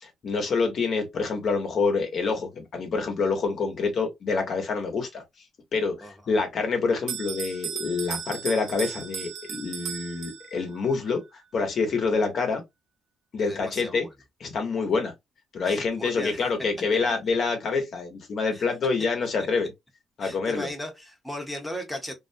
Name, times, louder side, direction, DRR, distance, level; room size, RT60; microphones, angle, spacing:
voice 1, 0.0-5.2 5.7-12.6 13.3-14.1 14.4-15.1 15.5-19.7 20.2-20.7, left 4 dB, 55° left, 0.9 m, -27 dB
Bell, 7.1-10.8, right 8 dB, 70° right, 0.5 m, -36 dB
voice 2, 13.4-14.1 15.6-16.4 18.5-18.6 20.2-22.1, left 1 dB, ahead, 0.8 m, -36 dB
2.4 x 2.0 x 2.6 m
cardioid pair, 90°, 0 cm